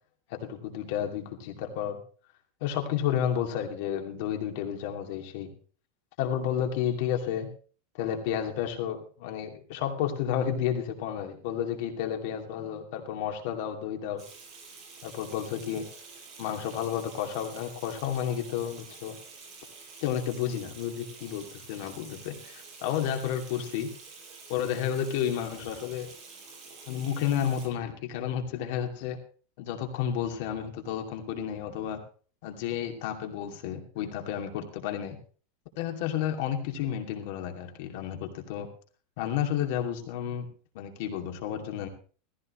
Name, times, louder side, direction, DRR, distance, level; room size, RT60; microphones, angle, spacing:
voice 1, 0.3-2.0 2.6-5.5 6.2-7.5 8.0-14.2 15.0-15.9 16.4-19.2 20.0-23.9 24.5-26.1 26.9-29.2 29.6-32.0 32.4-35.2 35.8-38.7 39.2-40.5 40.7-41.9, left 9 dB, 60° left, 3 dB, 2.5 m, -31 dB
Water tap faucet / Sink (filling or washing), 14.2-27.7, right 4 dB, 30° right, 6.3 m, -48 dB
16.5 x 15.5 x 3.1 m, 0.39 s
supercardioid pair, 160°, 0 cm